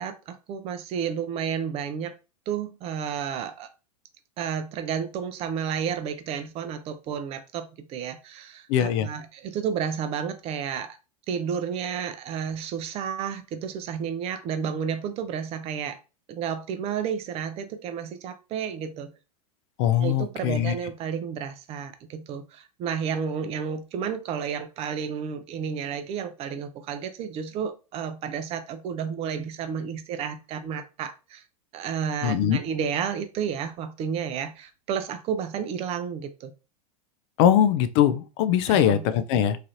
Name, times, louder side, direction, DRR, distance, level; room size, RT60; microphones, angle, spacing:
voice 1, 0.0-2.1 2.5-3.7 4.4-11.0 11.3-16.0 16.3-19.1 20.0-31.4 31.7-36.5 38.7-39.1, right 7 dB, 30° right, 0.4 m, -31 dB
voice 2, 8.7-9.1 19.8-20.7 32.2-32.6 37.4-39.6, left 10 dB, 50° left, 0.4 m, -21 dB
3.2 x 2.4 x 2.7 m
hypercardioid pair, 105°, 19 cm